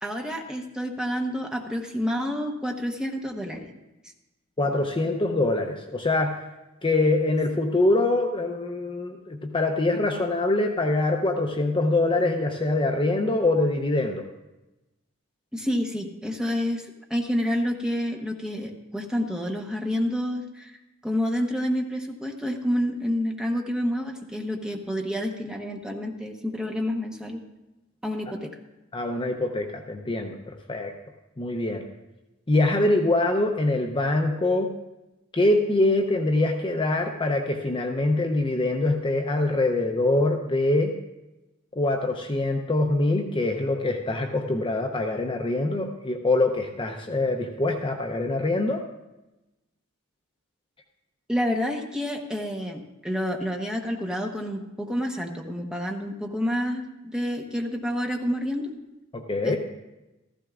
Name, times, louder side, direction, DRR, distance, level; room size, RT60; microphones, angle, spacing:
voice 1, 0.0-3.7 15.5-20.8 21.0-27.4 28.0-28.5 51.3-58.7 59.4-59.6, equal, 5° right, 2 dB, 1.0 m, -29 dB
voice 2, 4.6-6.4 6.8-14.2 28.9-30.9 31.4-31.8 32.5-34.7 35.3-40.9 41.7-48.8 59.1-59.6, left 2 dB, 25° left, 3 dB, 0.6 m, -24 dB
15.0 x 14.5 x 2.4 m, 1.0 s
head